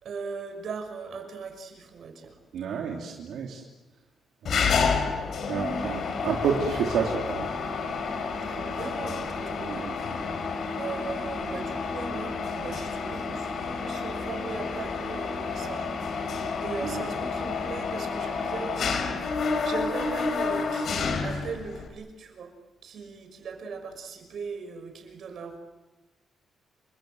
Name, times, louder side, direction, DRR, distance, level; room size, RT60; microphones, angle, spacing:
voice 1, 0.0-2.4 8.4-9.9 10.8-19.1 19.4-22.5 22.8-25.6, right 5 dB, 60° right, 6 dB, 5.9 m, -39 dB
voice 2, 2.5-3.6 4.4-4.8 5.5-7.5 9.6-10.0 16.8-17.1, right 6 dB, 85° right, 0 dB, 3.0 m, -30 dB
Mechanisms, 4.5-21.9, left 4 dB, 60° left, 4.6 m, -30 dB
29.5 x 25.0 x 7.9 m, 1.1 s
wide cardioid pair, 150°, 0 cm